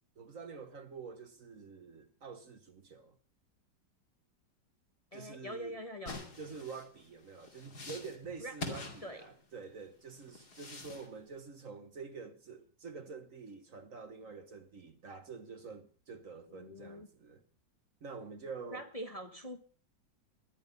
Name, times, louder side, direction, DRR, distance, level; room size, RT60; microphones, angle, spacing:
voice 1, 0.2-3.2 5.1-5.8 6.4-17.4 18.0-18.9, right 5 dB, 50° right, 1.5 m, -47 dB
voice 2, 5.1-6.2 8.4-9.2 16.5-17.1 18.7-19.6, equal, 20° left, 1.3 m, -44 dB
sound 1, 6.1-9.7 10.2-11.1, left 3 dB, 60° left, 3.1 m, -45 dB
20.0 x 11.5 x 5.4 m
omnidirectional pair, 1.9 m